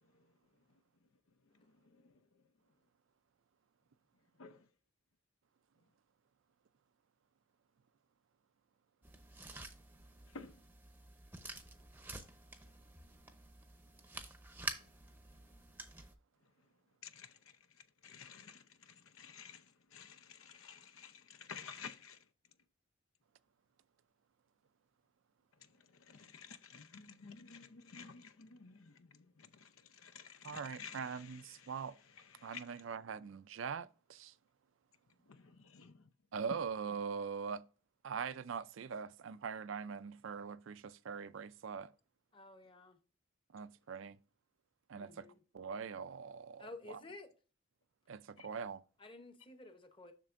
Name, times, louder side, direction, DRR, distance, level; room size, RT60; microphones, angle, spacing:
sound 1, 9.0-16.1, right 3 dB, 10° right, 0.7 m, -49 dB
voice 1, 17.0-17.3 18.0-19.6 19.9-22.2 26.1-31.3 32.4-32.6 35.3-36.1 48.4-48.5, left 6 dB, 90° left, 0.7 m, -52 dB
voice 2, 30.4-32.0 32.4-34.3 36.3-37.6 38.0-41.9 43.5-44.2 44.9-45.3 45.5-47.0 48.1-48.8, right 6 dB, 70° right, 0.4 m, -42 dB
voice 3, 42.3-43.0 44.9-45.4 46.6-47.3 49.0-50.1, left 2 dB, 25° left, 0.9 m, -53 dB
7.4 x 6.5 x 2.5 m
head